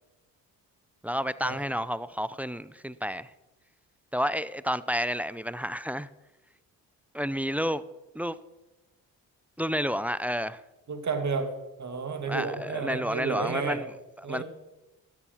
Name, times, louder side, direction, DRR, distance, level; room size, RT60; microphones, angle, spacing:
voice 1, 1.0-3.3 4.1-6.1 7.1-7.8 8.1-8.4 9.6-10.6 12.2-14.4, equal, 5° right, 0.4 m, -30 dB
voice 2, 10.9-11.5 11.8-13.8 14.2-14.4, right 4 dB, 50° right, 2.1 m, -31 dB
12.5 x 7.3 x 5.7 m
supercardioid pair, 60°, 37 cm